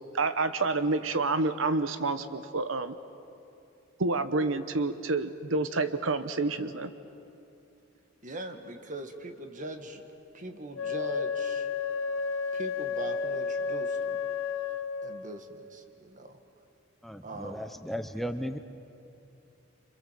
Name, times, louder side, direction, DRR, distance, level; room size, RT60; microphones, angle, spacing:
voice 1, 0.1-2.9 4.0-6.9, right 3 dB, 75° right, 11 dB, 1.0 m, -28 dB
voice 2, 8.2-10.1 10.3-11.7 12.5-14.3 15.0-16.4 17.2-17.7, right 1 dB, 40° right, 7 dB, 1.8 m, -41 dB
Wind instrument woodwind instrument, 10.7-15.4, left 5 dB, 80° left, 1.1 m, -32 dB
voice 3, 17.0-18.6, equal, ahead, 8 dB, 0.7 m, -35 dB
28.5 x 27.0 x 7.6 m, 2.7 s
head